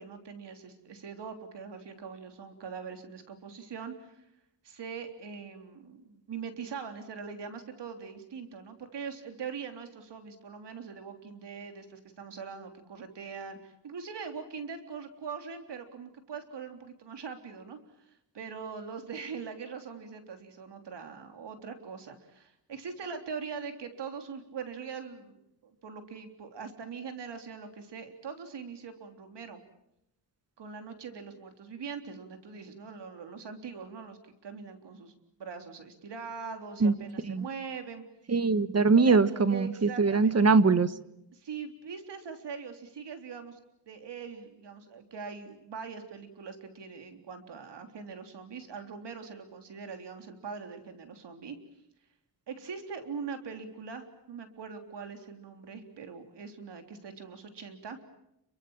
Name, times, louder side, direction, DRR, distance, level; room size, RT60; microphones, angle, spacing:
voice 1, 0.0-4.3 4.6-25.4 25.6-29.6 30.6-38.0 39.1-39.2 39.5-40.3 41.3-43.6 43.9-51.6 52.5-58.0, right 6 dB, 70° right, 6 dB, 3.6 m, -42 dB
voice 2, 38.3-40.9, right 4 dB, 35° right, 14 dB, 1.3 m, -22 dB
30.0 x 23.5 x 7.3 m, 0.82 s
wide cardioid pair, 110°, 42 cm